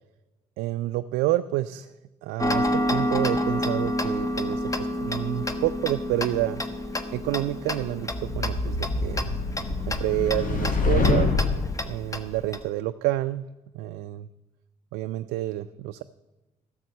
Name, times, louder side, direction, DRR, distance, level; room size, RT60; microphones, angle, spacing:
voice 1, 0.6-1.9 2.2-6.6 7.1-9.4 9.9-11.3 11.8-13.5 13.7-14.3 14.9-16.0, right 15 dB, 80° right, 10 dB, 0.4 m, -28 dB
Tick-tock, 2.4-12.6, left 1 dB, 20° left, 1.2 m, -29 dB
sound 1, 8.1-11.8, left 3 dB, 55° left, 2.0 m, -25 dB
12.5 x 7.3 x 7.8 m, 1.1 s
hypercardioid pair, 55°, 17 cm